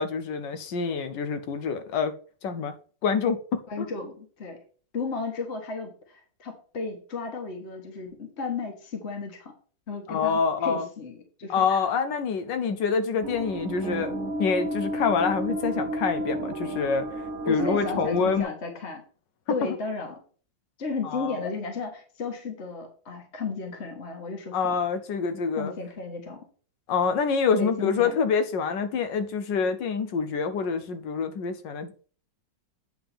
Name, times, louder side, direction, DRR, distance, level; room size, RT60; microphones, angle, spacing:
voice 1, 0.0-2.1 2.4-2.7 3.0-3.9 10.1-10.9 11.5-14.1 14.4-17.1 17.5-18.5 21.0-21.5 24.5-25.7 26.9-32.0, left 5 dB, 75° left, 1.5 m, -26 dB
voice 2, 3.7-4.6 4.9-9.5 9.9-11.8 17.4-19.0 19.5-20.2 20.8-24.8 25.6-26.4 27.5-28.2, left 4 dB, 40° left, 1.7 m, -34 dB
sound 1, 13.2-18.4, right 1 dB, 55° right, 0.9 m, -32 dB
9.0 x 3.6 x 6.9 m
omnidirectional pair, 2.0 m